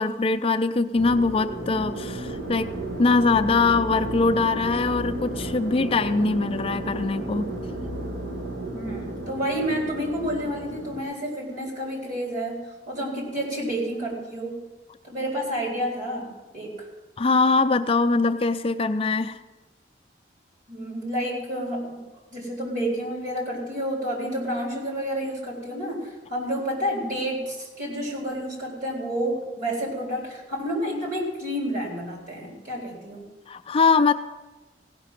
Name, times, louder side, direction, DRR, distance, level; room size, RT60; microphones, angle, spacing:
voice 1, 0.0-2.7 3.0-7.5 17.2-19.4 33.5-34.1, left 3 dB, 35° left, 9 dB, 0.4 m, -22 dB
sound 1, 0.9-11.0, right 2 dB, 80° right, 2.1 m, -33 dB
voice 2, 8.7-14.6 15.0-16.9 20.7-22.0 22.3-33.2, equal, 50° right, -2 dB, 4.2 m, -30 dB
16.5 x 6.0 x 7.5 m, 1.2 s
head